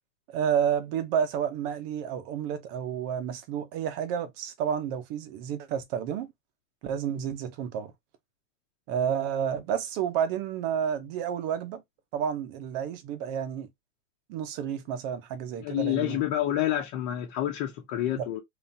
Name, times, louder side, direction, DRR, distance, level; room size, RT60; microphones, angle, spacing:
voice 1, 0.3-6.3 6.8-7.9 8.9-11.8 12.1-13.7 14.3-16.2 18.2-18.3, right 8 dB, 40° right, 0.9 m, -30 dB
voice 2, 15.6-18.4, left 12 dB, 40° left, 1.1 m, -28 dB
3.9 x 3.4 x 2.8 m
hypercardioid pair, 135°, 43 cm